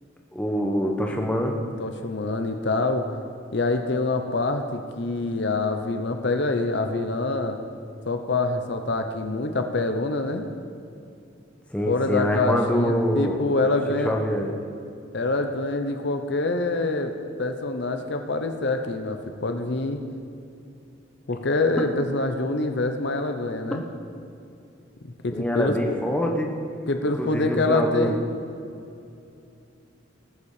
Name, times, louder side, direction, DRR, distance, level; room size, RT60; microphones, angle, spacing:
voice 1, 0.3-1.6 11.7-13.5 14.0-14.5 25.3-26.5 27.1-28.1, equal, 5° left, 0 dB, 1.0 m, -25 dB
voice 2, 1.8-3.1 3.5-7.6 8.1-10.5 11.9-14.1 15.1-17.1 17.4-20.0 21.3-23.8 25.0-26.0 26.9-28.2, left 2 dB, 60° left, 6 dB, 0.8 m, -25 dB
19.5 x 7.1 x 5.0 m, 2.6 s
head